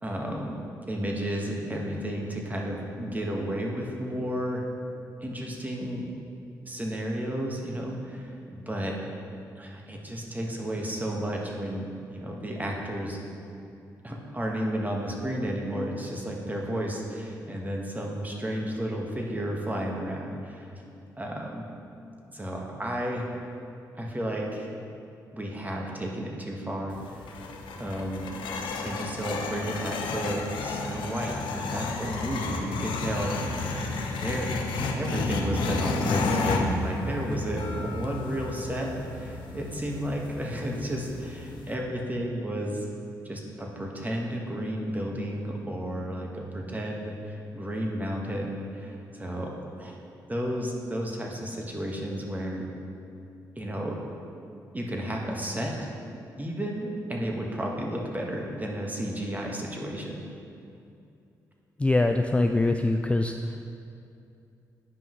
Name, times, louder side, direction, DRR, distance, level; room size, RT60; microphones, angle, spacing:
voice 1, 0.0-0.6 0.9-4.7 5.2-6.1 6.6-9.0 9.6-13.2 14.0-20.7 21.2-21.6 22.3-23.3 23.9-24.7 25.3-27.5 27.7-28.3 28.8-33.4 34.2-42.9 43.2-50.0 50.3-52.7 53.6-54.0 54.7-55.8 56.4-60.2, equal, 20° right, -1 dB, 1.4 m, -32 dB
sound 1, 26.9-41.7, left 3 dB, 70° left, 0.6 m, -32 dB
voice 2, 61.8-63.6, left 2 dB, 15° left, 5 dB, 0.3 m, -23 dB
9.9 x 5.3 x 3.1 m, 2.6 s
hypercardioid pair, 45°, 8 cm